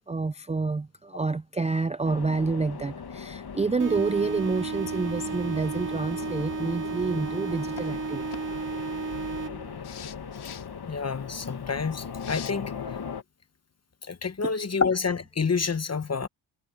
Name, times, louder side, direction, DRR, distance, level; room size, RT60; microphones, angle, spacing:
voice 1, 0.1-8.3 14.4-14.5, right 4 dB, 15° right, 0.4 m, -28 dB
sound 1, 2.0-13.2, left 6 dB, 50° left, 1.9 m, -39 dB
sound 2, 3.8-9.8, right 5 dB, 40° right, 2.5 m, -33 dB
sound 3, 7.7-7.9 8.3-8.4 9.8-10.7 12.2-12.5, left 9 dB, 85° left, 3.1 m, -42 dB
voice 2, 10.9-12.7 14.0-16.3, left 5 dB, 30° left, 1.1 m, -28 dB
cardioid pair, 80°, 49 cm